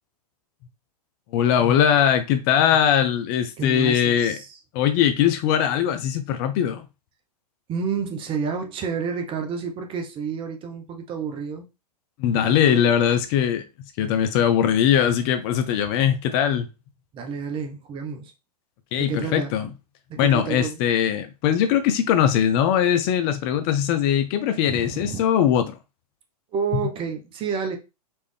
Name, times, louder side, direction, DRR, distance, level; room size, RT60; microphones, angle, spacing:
voice 1, 1.3-4.4 4.7-6.8 12.2-13.6 14.0-16.7 18.9-19.7 20.2-25.8, left 9 dB, 40° left, 0.6 m, -21 dB
voice 2, 3.6-4.6 7.7-11.7 12.3-12.8 17.1-18.3 19.0-19.6 20.1-20.8 24.7-25.2 26.5-27.8, right 6 dB, 25° right, 0.9 m, -30 dB
4.3 x 3.3 x 3.3 m
figure-of-eight pair, 110°, 20 cm